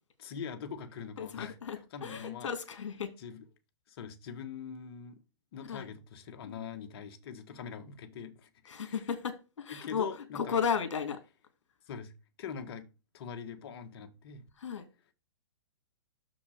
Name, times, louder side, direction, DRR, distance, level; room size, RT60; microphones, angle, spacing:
voice 1, 0.2-1.6 1.9-2.5 3.2-3.5 3.9-5.2 5.5-8.5 8.8-9.0 9.7-10.6 11.9-14.4, left 6 dB, 50° left, 1.6 m, -43 dB
voice 2, 1.2-3.1 5.7-5.9 6.5-6.6 8.7-11.2 14.6-14.9, left 6 dB, 70° left, 2.8 m, -35 dB
6.9 x 6.1 x 5.0 m
hypercardioid pair, 135°, 16 cm